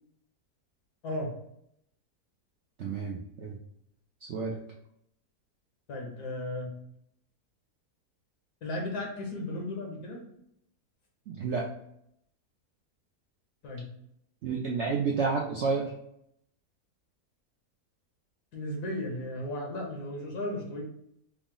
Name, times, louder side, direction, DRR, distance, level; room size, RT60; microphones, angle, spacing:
voice 1, 2.8-3.6 4.2-4.6 11.3-11.7 14.4-15.9, right 4 dB, 70° right, -1 dB, 0.6 m, -30 dB
voice 2, 5.9-6.7 8.6-10.2 13.6-13.9 18.5-20.8, left 1 dB, 80° left, 0 dB, 1.6 m, -35 dB
4.7 x 2.0 x 3.6 m, 0.74 s
omnidirectional pair, 1.7 m